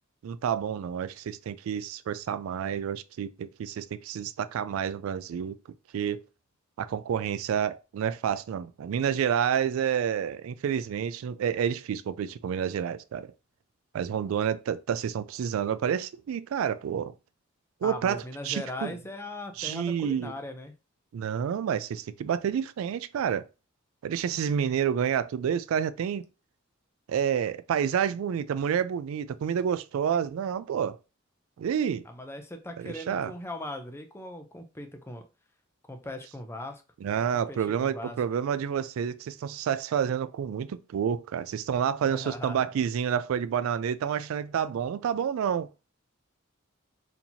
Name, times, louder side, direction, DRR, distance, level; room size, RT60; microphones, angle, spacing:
voice 1, 0.2-5.6 5.9-6.2 6.8-13.3 13.9-17.1 17.8-18.9 19.6-20.3 21.1-23.4 24.0-26.3 27.1-31.0 31.6-32.0 32.8-33.3 37.0-45.7, right 8 dB, 85° right, 0.3 m, -29 dB
voice 2, 17.8-20.7 32.0-35.2 35.8-36.8 37.3-38.2 42.1-42.7, left 1 dB, 10° left, 0.5 m, -39 dB
4.3 x 2.8 x 2.7 m
head